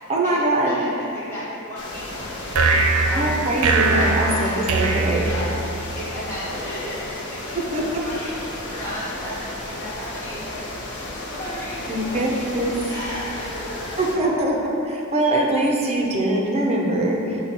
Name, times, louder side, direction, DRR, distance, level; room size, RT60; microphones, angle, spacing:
voice 1, 0.1-0.8 3.1-5.3 7.5-7.8 11.9-12.8 14.0-14.6 14.8-17.4, right 1 dB, 30° right, -1 dB, 0.5 m, -22 dB
voice 2, 0.6-3.2 3.7-5.5 5.7-12.4 12.8-14.0, left 1 dB, 10° left, -12 dB, 0.8 m, -35 dB
sound 1, 1.8-14.2, left 1 dB, 55° left, 0.7 m, -34 dB
sound 2, 2.5-5.9, right 3 dB, 85° right, 0.4 m, -21 dB
5.6 x 2.2 x 4.1 m, 2.8 s
head